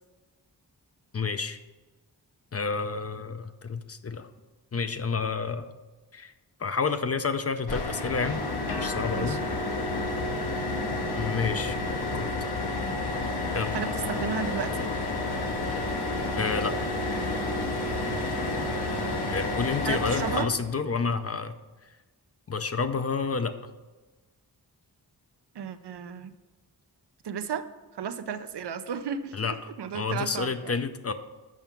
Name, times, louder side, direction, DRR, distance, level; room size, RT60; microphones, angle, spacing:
voice 1, 1.1-1.6 2.5-4.3 4.7-5.7 6.1-6.3 6.6-8.4 8.8-9.4 11.1-11.8 12.1-12.3 13.5-13.8 16.4-16.8 19.3-21.5 22.5-23.6 29.3-31.1, left 5 dB, 40° left, 10 dB, 0.5 m, -29 dB
sound 1, 7.7-20.4, left 2 dB, 70° left, 1.1 m, -30 dB
voice 2, 13.7-14.9 19.9-20.5 25.5-26.3 27.2-27.6 27.9-30.8, right 7 dB, 80° right, 10 dB, 0.6 m, -34 dB
7.3 x 5.6 x 5.9 m, 1.2 s
wide cardioid pair, 85°, 40 cm